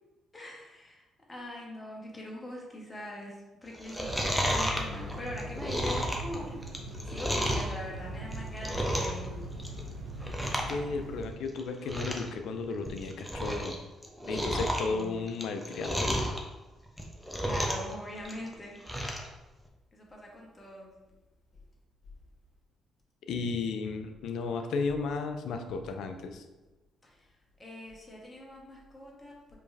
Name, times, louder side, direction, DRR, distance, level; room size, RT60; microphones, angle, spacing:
voice 1, 0.3-6.6 7.0-9.5 14.2-15.3 17.4-18.8 19.9-20.9 27.0-29.6, left 1 dB, 25° left, -2 dB, 1.3 m, -43 dB
Chewing mastication, 3.7-7.7 8.2-9.3 9.5-9.9 10.2-10.7 11.0-11.1 11.6-11.7 11.9-12.3 12.7-13.7 14.0-16.4 16.9-17.9 18.2-19.3 19.7-19.8, equal, 5° left, 0.8 m, -32 dB
sound 1, 4.0-11.3, right 1 dB, 80° right, 0.7 m, -41 dB
voice 2, 10.4-13.8 14.3-16.2 23.3-26.4, left 4 dB, 70° left, 7 dB, 0.4 m, -34 dB
4.5 x 3.0 x 2.7 m, 1.1 s
hypercardioid pair, 50°, 0 cm